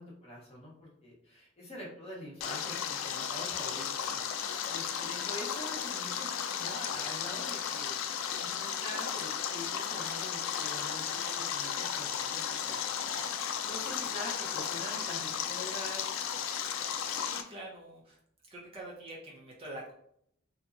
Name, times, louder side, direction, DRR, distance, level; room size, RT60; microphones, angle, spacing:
voice 1, 0.0-13.3 13.6-16.1, left 1 dB, 30° left, -4 dB, 0.8 m, -45 dB
Stream, 2.4-17.4, left 8 dB, 85° left, 0.3 m, -34 dB
voice 2, 4.0-4.3 16.7-18.2 18.5-19.9, right 1 dB, 30° right, -3 dB, 0.6 m, -46 dB
2.7 x 2.2 x 2.5 m, 0.68 s
head